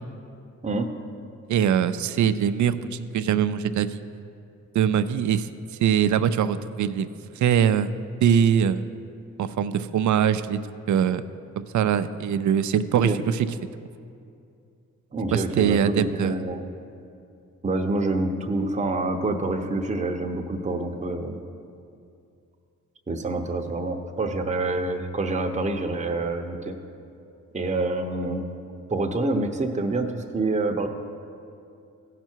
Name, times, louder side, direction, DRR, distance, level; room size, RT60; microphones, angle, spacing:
voice 1, 1.5-4.0 4.7-5.5 5.8-7.1 7.4-7.9 8.2-8.9 9.4-10.6 10.9-11.2 11.6-13.5 15.3-16.4, right 8 dB, 65° right, 12 dB, 0.5 m, -22 dB
voice 2, 15.1-16.6 17.6-21.4 23.1-26.8 27.5-28.4 28.9-30.9, right 2 dB, 20° right, 3 dB, 0.9 m, -27 dB
15.5 x 5.8 x 4.6 m, 2.5 s
cardioid pair, 65°, 31 cm